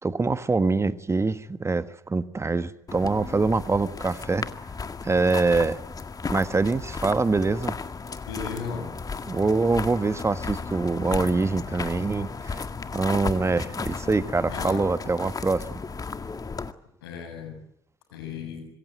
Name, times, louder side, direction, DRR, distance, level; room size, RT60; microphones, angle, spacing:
voice 1, 0.0-4.5 5.0-5.8 6.3-7.7 9.2-12.6 12.9-15.8, right 3 dB, 20° right, 13 dB, 1.4 m, -24 dB
sound 1, 2.9-16.7, left 4 dB, 30° left, 1.9 m, -35 dB
voice 2, 8.3-8.9 14.5-14.9 17.0-17.6 18.1-18.7, left 5 dB, 75° left, 6 dB, 7.2 m, -35 dB
26.0 x 21.5 x 9.1 m, 0.75 s
figure-of-eight pair, 50°, 12 cm